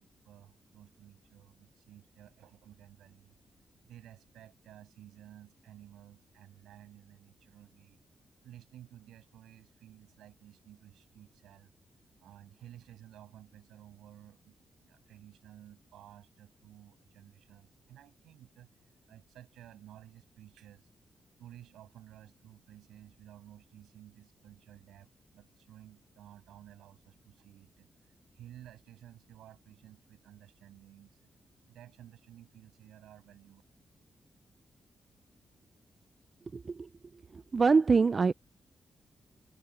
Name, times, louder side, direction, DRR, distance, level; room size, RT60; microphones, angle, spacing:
voice 1, 0.0-3.3 3.8-8.0 8.4-11.7 12.2-18.7 19.1-20.9 21.4-31.2 31.7-33.6, right 12 dB, 85° right, 7.8 m, -54 dB
voice 2, 37.5-38.3, right 4 dB, 45° right, 0.5 m, -24 dB
supercardioid pair, 50°, 0 cm